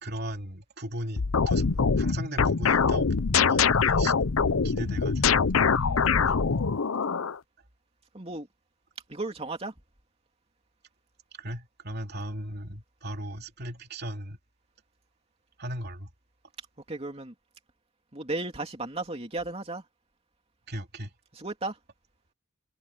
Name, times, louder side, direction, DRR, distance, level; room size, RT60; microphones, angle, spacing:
voice 1, 0.0-1.6 2.0-4.1 4.6-5.5 6.3-6.4 11.4-14.4 15.6-16.1 20.7-21.1, right 1 dB, 50° right, 3.1 m, -37 dB
sound 1, 1.2-7.4, left 5 dB, 90° left, 0.7 m, -24 dB
voice 2, 5.7-6.5 8.1-8.5 9.1-9.7 16.9-17.3 18.1-19.8 21.3-21.8, right 2 dB, 30° right, 2.8 m, -35 dB
head